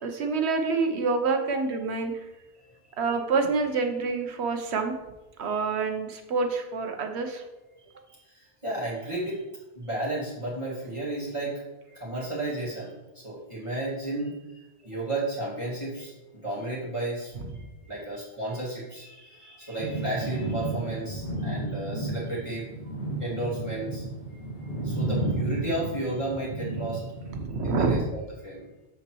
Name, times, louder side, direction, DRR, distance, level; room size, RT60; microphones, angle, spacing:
voice 1, 0.0-2.1 3.0-4.9 5.4-7.4 27.3-28.1, right 4 dB, 80° right, 5 dB, 1.1 m, -27 dB
voice 2, 2.5-3.0 7.8-9.5 9.7-11.6 11.9-24.4 24.8-27.3 27.6-28.7, right 2 dB, 30° right, -8 dB, 2.0 m, -34 dB
sound 1, 19.8-27.4, right 1 dB, 75° left, 2.1 m, -32 dB
7.3 x 6.7 x 3.1 m, 1.1 s
omnidirectional pair, 1.1 m